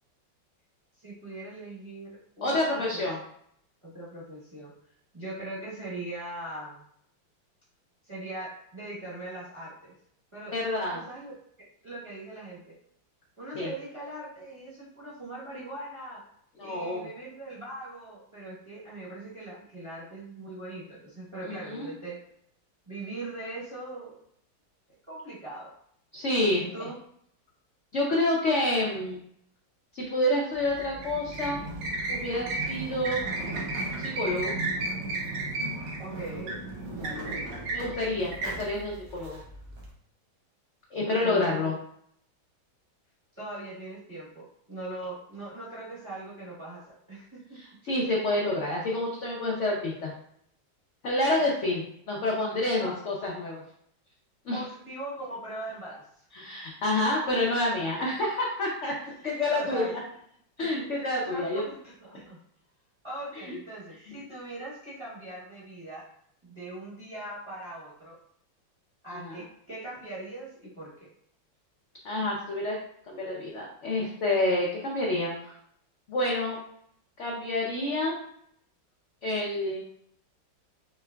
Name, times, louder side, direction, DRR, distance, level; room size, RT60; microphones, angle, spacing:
voice 1, 1.0-3.0 3.8-4.7 5.1-6.8 8.0-9.9 10.3-10.5 10.9-11.3 11.8-12.8 13.4-16.2 16.6-22.2 22.9-24.2 25.1-25.7 26.5-27.0 36.0-36.6 36.9-37.4 41.2-41.8 43.4-47.6 52.8-52.9 54.5-56.3 59.2-60.0 60.9-62.4 63.0-66.1 66.4-68.2 69.0-71.1, right 2 dB, 20° right, -8 dB, 0.8 m, -40 dB
voice 2, 2.4-3.2 10.5-11.0 13.5-13.7 16.6-17.1 21.4-21.9 26.1-26.7 27.9-29.2 29.9-31.6 32.1-33.2 34.0-34.5 37.7-39.4 40.9-41.7 47.5-50.1 51.0-53.6 54.5-54.6 56.3-59.0 59.2-59.9 60.6-61.6 63.5-63.6 69.1-69.4 72.0-72.8 73.1-75.3 76.1-76.6 77.2-78.2 79.2-79.8, left 1 dB, 75° left, -3 dB, 0.6 m, -28 dB
sound 1, 30.5-39.9, right 2 dB, 90° right, 1.7 m, -34 dB
4.6 x 3.3 x 2.3 m, 0.68 s
omnidirectional pair, 2.1 m